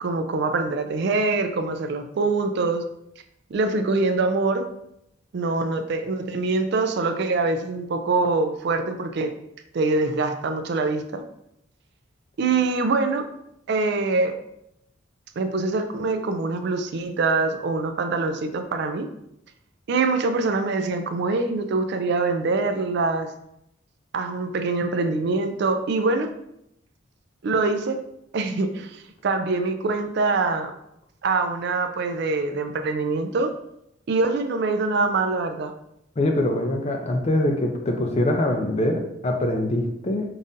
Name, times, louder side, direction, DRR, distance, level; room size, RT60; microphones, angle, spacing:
voice 1, 0.0-2.8 3.5-4.6 5.3-9.3 9.7-11.2 12.4-13.3 13.7-14.3 15.4-19.1 19.9-23.3 24.1-26.3 27.4-28.0 28.3-30.7 31.2-33.5 34.1-35.7, right 3 dB, 55° right, 7 dB, 0.3 m, -24 dB
voice 2, 36.2-40.2, left 1 dB, 30° left, 3 dB, 0.5 m, -23 dB
5.3 x 2.5 x 2.7 m, 0.79 s
head